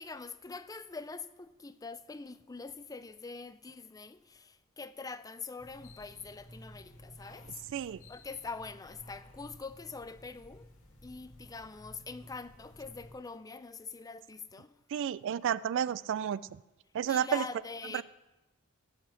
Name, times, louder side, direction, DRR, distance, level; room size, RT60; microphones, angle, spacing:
voice 1, 0.0-10.7 11.0-14.7 17.0-18.0, left 4 dB, 15° left, 0.4 m, -44 dB
sound 1, 5.6-13.1, equal, 70° left, 1.9 m, -54 dB
voice 2, 14.9-16.4 16.9-17.4 17.9-18.0, right 9 dB, 60° right, 0.3 m, -31 dB
17.0 x 5.8 x 6.3 m
head